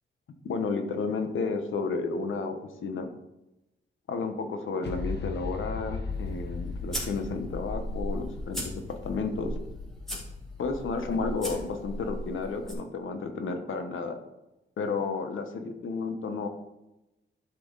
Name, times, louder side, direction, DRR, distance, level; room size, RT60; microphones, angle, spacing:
voice 1, 0.4-3.1 4.1-9.5 10.6-14.2 14.8-16.5, left 4 dB, 75° left, 7 dB, 1.2 m, -32 dB
sound 1, 4.8-12.4, left 4 dB, 55° left, 1.1 m, -38 dB
sound 2, 6.1-12.7, equal, ahead, 2.7 m, -38 dB
12.0 x 5.7 x 4.0 m, 0.94 s
wide cardioid pair, 155°, 21 cm